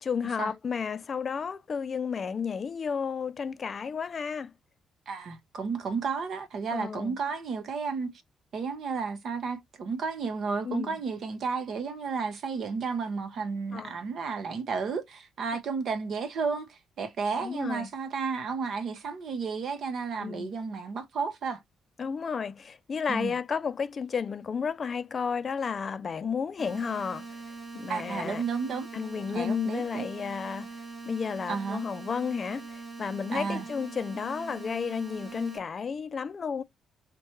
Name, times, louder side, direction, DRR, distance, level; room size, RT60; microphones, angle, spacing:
voice 1, 0.0-4.5 6.7-7.2 10.7-11.0 13.7-14.0 17.4-17.9 20.2-20.5 22.0-27.3 27.7-28.4 28.9-30.7 31.1-36.6, left 6 dB, 45° left, 0.4 m, -32 dB
voice 2, 5.1-8.1 8.5-21.6 23.1-23.3 27.9-28.9 29.3-30.1 31.5-31.8 33.3-33.7, right 5 dB, 60° right, 0.8 m, -32 dB
sound 1, 26.6-35.6, right 3 dB, 30° right, 2.0 m, -42 dB
4.3 x 2.2 x 3.1 m
cardioid pair, 90°, 0 cm